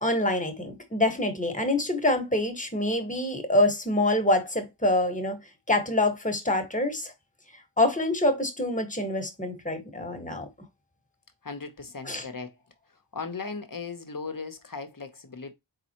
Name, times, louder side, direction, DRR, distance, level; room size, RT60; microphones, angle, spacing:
voice 1, 0.0-5.4 5.7-7.1 7.8-10.5 12.0-12.3, left 1 dB, 15° left, 1.6 m, -26 dB
voice 2, 11.4-12.6 13.1-15.5, left 4 dB, 40° left, 1.0 m, -37 dB
4.2 x 3.9 x 2.9 m
cardioid pair, 45°, 50 cm